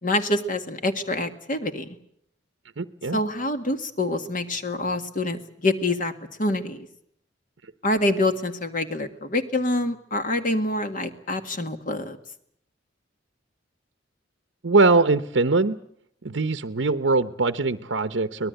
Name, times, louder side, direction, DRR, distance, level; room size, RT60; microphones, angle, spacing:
voice 1, 0.0-1.9 3.1-6.1 6.4-6.9 7.8-12.2, left 2 dB, 45° left, 8 dB, 1.9 m, -26 dB
voice 2, 2.8-3.2 7.6-7.7 14.6-15.8 16.2-18.5, right 3 dB, 65° right, 11 dB, 0.8 m, -22 dB
24.5 x 19.0 x 8.0 m, 0.70 s
head